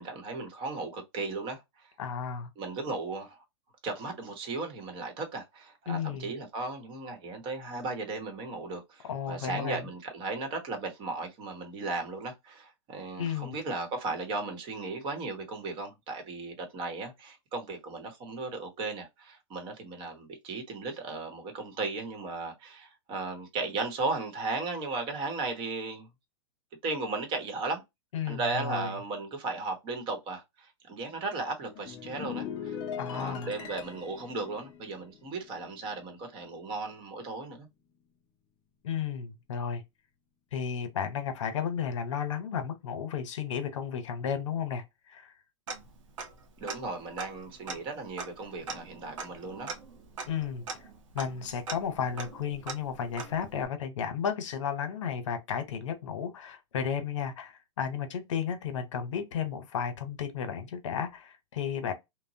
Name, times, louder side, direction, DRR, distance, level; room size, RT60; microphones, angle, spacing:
voice 1, 0.0-1.9 2.6-3.4 3.8-26.1 26.8-27.8 28.2-32.8 33.1-37.7 46.6-49.7, right 3 dB, 30° right, 1.0 m, -36 dB
voice 2, 2.0-2.5 5.9-6.3 9.1-9.9 13.2-13.5 28.1-28.9 33.0-33.5 38.8-39.8 40.5-45.3 50.3-50.6 51.1-61.9, left 7 dB, 75° left, 0.9 m, -33 dB
sound 1, 31.6-36.2 36.5-36.8, left 8 dB, 30° left, 0.6 m, -41 dB
Tick-tock, 45.7-46.4 46.7-46.8 47.1-53.7, right 4 dB, 80° right, 1.0 m, -41 dB
3.0 x 2.1 x 2.7 m
hypercardioid pair, 140°, 16 cm